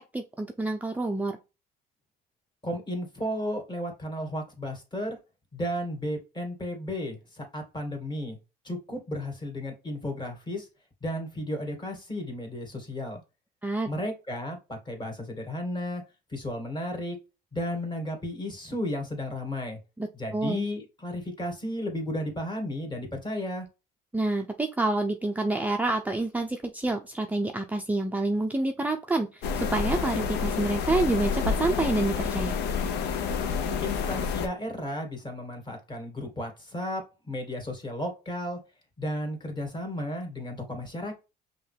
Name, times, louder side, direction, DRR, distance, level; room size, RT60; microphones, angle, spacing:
voice 1, 0.0-1.4 13.6-13.9 20.0-20.7 24.1-32.5, right 2 dB, 10° right, 4 dB, 0.5 m, -28 dB
voice 2, 2.6-5.2 5.5-8.4 8.6-10.7 11.0-13.2 13.9-16.0 16.3-17.2 17.5-19.8 20.2-23.7 33.8-38.6 39.0-41.2, left 1 dB, 25° left, 3 dB, 2.2 m, -34 dB
sound 1, 29.4-34.5, left 6 dB, 80° left, 0.8 m, -29 dB
5.5 x 2.9 x 3.3 m, 0.28 s
cardioid pair, 110°, 17 cm